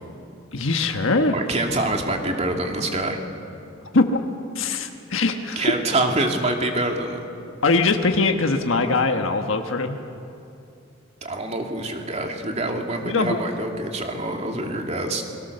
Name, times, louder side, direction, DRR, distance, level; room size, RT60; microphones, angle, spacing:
voice 1, 0.5-1.3 3.9-4.2 4.5-5.7 7.6-10.0 13.0-13.4, left 3 dB, 75° left, 5 dB, 1.4 m, -21 dB
voice 2, 1.3-3.2 5.6-7.3 11.2-15.2, right 2 dB, 35° right, 2 dB, 2.7 m, -25 dB
30.0 x 23.5 x 6.8 m, 2.7 s
head